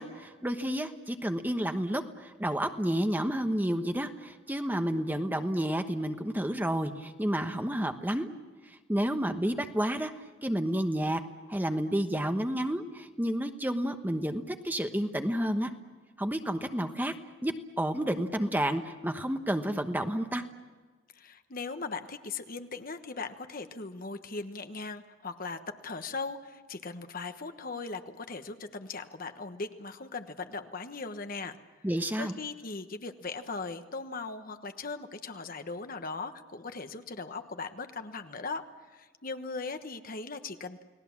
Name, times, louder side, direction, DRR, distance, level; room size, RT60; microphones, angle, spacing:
voice 1, 0.0-8.3 8.9-10.1 10.4-11.2 11.5-15.7 16.2-17.1 17.4-20.4 31.8-32.3, equal, 10° right, 7 dB, 1.1 m, -30 dB
voice 2, 21.1-31.6 32.2-38.6 38.9-40.8, left 4 dB, 45° left, 8 dB, 1.2 m, -39 dB
30.0 x 19.0 x 7.3 m, 1.4 s
head